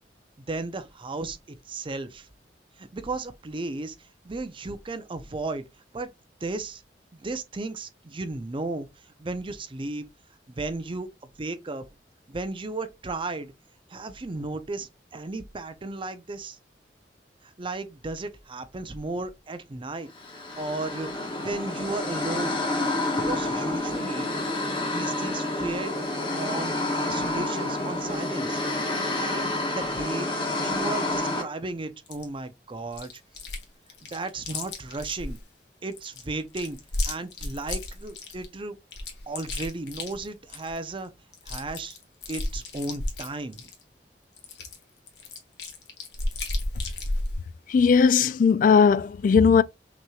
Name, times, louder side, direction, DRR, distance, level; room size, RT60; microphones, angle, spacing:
voice 1, 0.5-2.3 2.8-5.6 5.9-6.1 6.4-6.8 7.1-10.1 10.5-11.1 11.4-11.8 12.3-13.5 13.9-16.6 17.4-20.1 20.6-22.6 23.2-24.6 24.9-26.0 26.3-28.6 29.1-33.1 34.1-35.4 35.8-36.8 37.0-38.8 39.3-41.1 41.4-42.0 42.3-43.7, right 2 dB, 30° right, 0.5 m, -34 dB
sound 1, 20.2-31.4, left 2 dB, 30° left, 1.3 m, -29 dB
Chewing mastication, 32.1-32.2 32.9-33.6 33.9-35.4 35.9-38.5 38.9-40.8 41.0-41.1 41.3-43.8 44.4-47.4, left 2 dB, 75° left, 1.2 m, -33 dB
voice 2, 47.7-49.6, left 6 dB, 50° left, 0.3 m, -18 dB
5.9 x 3.0 x 2.3 m
head